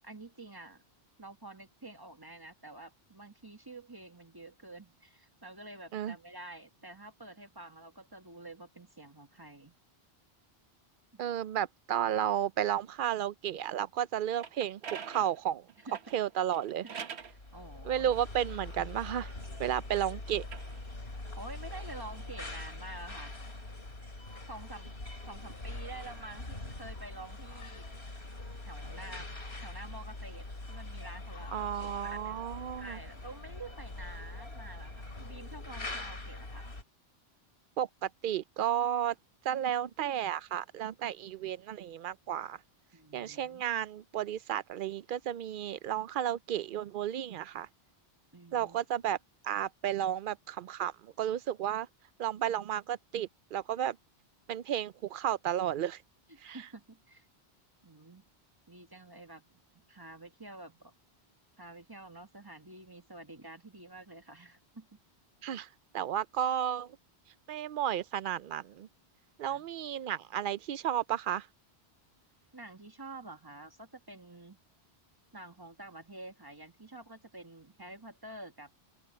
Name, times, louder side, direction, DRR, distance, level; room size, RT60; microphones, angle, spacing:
voice 1, 0.0-0.8 1.2-9.7 11.1-11.2 15.8-16.0 16.8-18.1 19.6-19.7 21.4-23.3 24.5-24.9 25.3-27.9 28.6-29.3 29.6-32.4 32.8-36.6 42.9-43.6 48.3-48.8 56.3-57.3 57.8-58.3 58.7-60.9 61.6-65.0 69.4-69.7 72.5-74.6 75.3-78.7, right 2 dB, 20° right, 1.4 m, -49 dB
voice 2, 11.2-14.8 15.1-15.7 16.1-16.8 17.8-19.3 19.6-20.4 31.5-33.0 37.8-39.1 39.4-42.6 43.1-47.7 48.5-49.2 49.4-51.9 52.2-54.0 54.5-56.0 56.4-56.6 65.4-65.7 65.9-67.0 67.5-68.9 69.4-71.5, right 10 dB, 60° right, 0.6 m, -33 dB
sound 1, 14.4-17.4 18.1-19.8 20.3-22.7, right 7 dB, 80° right, 1.4 m, -47 dB
sound 2, 17.2-36.8, left 2 dB, 75° left, 3.8 m, -43 dB
open air
omnidirectional pair, 1.1 m